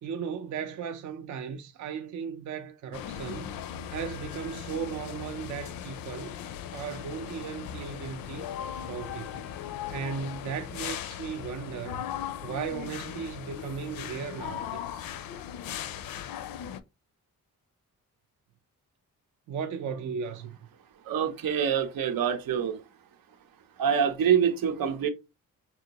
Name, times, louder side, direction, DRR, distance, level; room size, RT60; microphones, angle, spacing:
voice 1, 0.0-3.5 3.9-6.3 6.7-8.5 8.8-9.4 9.9-12.1 12.4-15.1 19.5-20.6, right 6 dB, 60° right, 0.5 m, -36 dB
sound 1, 2.9-16.8, left 10 dB, 80° left, 0.5 m, -38 dB
voice 2, 21.1-22.8 23.8-25.1, right 8 dB, 85° right, 0.8 m, -25 dB
4.9 x 2.8 x 2.8 m
wide cardioid pair, 160°, 34 cm